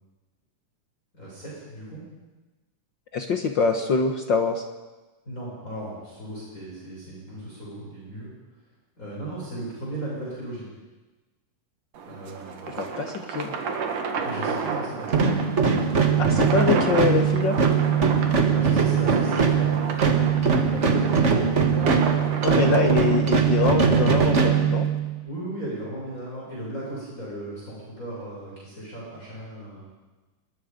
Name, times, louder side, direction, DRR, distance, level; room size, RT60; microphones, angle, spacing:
voice 1, 1.1-2.0 5.3-8.3 9.0-10.7 12.1-12.8 14.2-15.1 18.5-20.1 20.7-21.5 22.6-23.2 25.2-29.9, right 1 dB, 25° left, -6 dB, 7.1 m, -36 dB
voice 2, 3.1-4.6 12.8-13.5 16.2-17.6 22.4-24.9, left 4 dB, 60° left, 5 dB, 1.2 m, -24 dB
sound 1, 11.9-23.2, right 5 dB, 70° right, 3.3 m, -32 dB
sound 2, 15.1-25.3, right 6 dB, 40° right, 1.0 m, -21 dB
27.0 x 21.5 x 5.3 m, 1.2 s
omnidirectional pair, 3.8 m